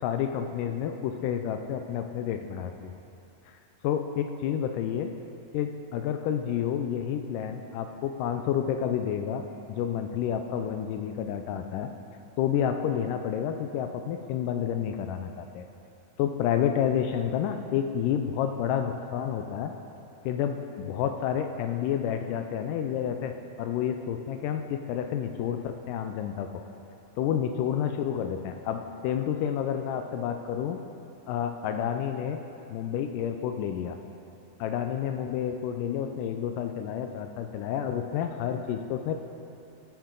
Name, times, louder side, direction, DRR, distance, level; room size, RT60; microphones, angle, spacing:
voice 1, 0.0-2.9 3.8-5.1 5.5-11.9 12.4-15.7 16.2-19.7 20.3-26.5 27.2-30.8 31.3-32.4 32.7-34.0 34.6-39.1, left 9 dB, 80° left, 6 dB, 1.9 m, -30 dB
16.5 x 7.2 x 3.8 m, 2.7 s
omnidirectional pair, 4.1 m